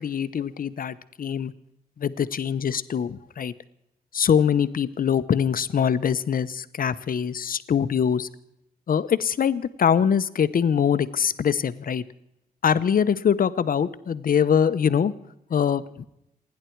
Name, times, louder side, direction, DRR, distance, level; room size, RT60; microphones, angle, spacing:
voice 1, 0.0-1.5 2.0-3.5 4.1-8.3 8.9-12.0 12.6-15.1 15.5-16.0, left 7 dB, 65° left, 14 dB, 0.9 m, -23 dB
28.0 x 10.5 x 4.6 m, 0.83 s
wide cardioid pair, 95°, 16 cm